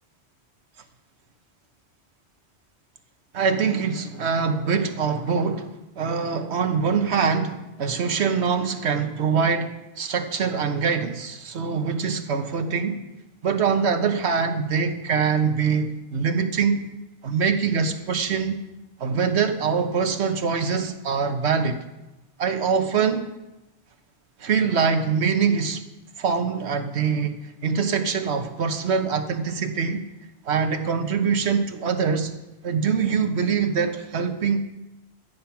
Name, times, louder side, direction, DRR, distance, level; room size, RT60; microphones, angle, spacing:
voice 1, 3.3-13.0 13.4-16.8 17.2-18.6 19.0-21.8 22.4-23.3 24.4-25.8 26.2-30.0 30.4-32.3 32.6-34.6, right 6 dB, 75° right, 8 dB, 1.3 m, -24 dB
12.5 x 9.5 x 5.7 m, 0.97 s
omnidirectional pair, 1.1 m